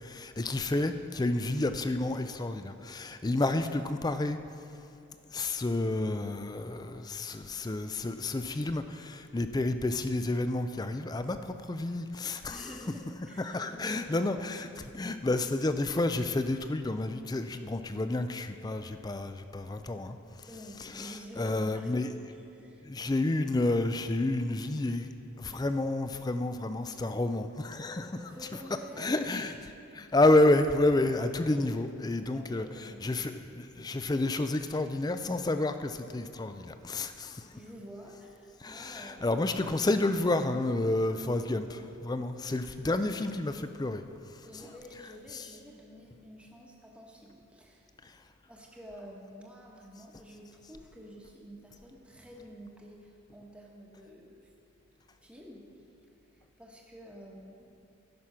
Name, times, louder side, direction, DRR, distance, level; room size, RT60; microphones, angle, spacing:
voice 1, 0.0-4.4 5.3-12.7 13.4-20.5 21.0-22.1 22.8-25.1 25.4-28.2 29.0-29.5 29.9-32.7 33.0-37.5 38.6-41.7 42.0-44.0 45.3-45.4 48.0-48.2, left 2 dB, 20° left, 9 dB, 0.3 m, -30 dB
voice 2, 12.5-14.3 20.5-22.9 28.0-29.6 31.2-31.7 32.3-33.1 33.8-34.0 37.5-39.3 41.1-41.5 44.4-47.9 48.5-54.5 55.1-55.9 56.3-57.7, equal, 5° right, -2 dB, 1.1 m, -49 dB
14.5 x 6.0 x 5.7 m, 2.6 s
head